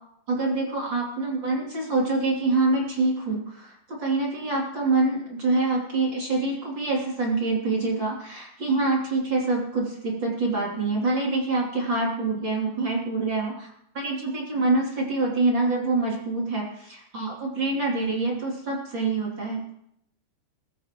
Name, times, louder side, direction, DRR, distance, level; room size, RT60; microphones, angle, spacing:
voice 1, 0.3-13.7 13.9-19.6, right 3 dB, 30° right, -3 dB, 3.0 m, -25 dB
22.0 x 13.5 x 3.1 m, 0.75 s
omnidirectional pair, 5.3 m